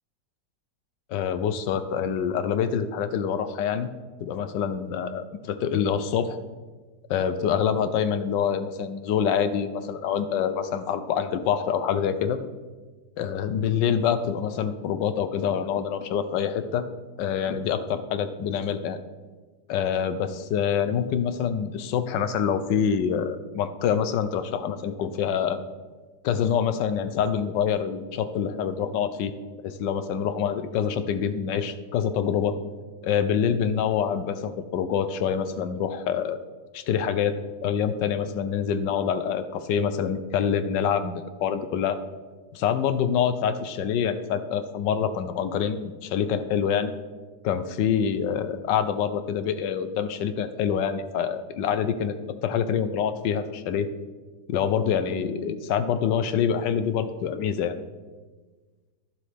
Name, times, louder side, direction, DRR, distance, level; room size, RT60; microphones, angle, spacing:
voice 1, 1.1-3.9 4.2-6.4 7.1-12.4 13.2-16.9 17.2-19.0 19.7-25.6 26.2-29.3 29.6-32.6 33.0-36.4 36.7-37.3 37.6-42.0 42.5-46.9 47.4-52.1 52.4-53.9 54.5-57.8, left 8 dB, 80° left, 11 dB, 1.3 m, -26 dB
12.0 x 11.5 x 3.4 m, 1.4 s
omnidirectional pair, 1.9 m